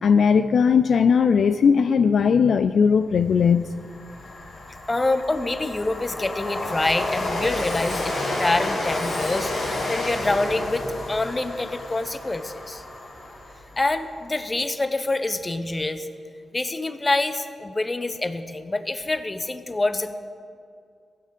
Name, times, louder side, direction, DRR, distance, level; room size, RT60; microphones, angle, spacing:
voice 1, 0.0-3.7, left 6 dB, 70° left, 10 dB, 0.3 m, -18 dB
Train, 3.1-3.2 3.6-14.0, left 2 dB, 90° left, 2.9 m, -30 dB
voice 2, 4.9-12.8 13.8-16.1 16.5-20.1, left 2 dB, 30° left, 10 dB, 0.8 m, -26 dB
16.0 x 6.6 x 5.3 m, 2.3 s
supercardioid pair, 50°, 0 cm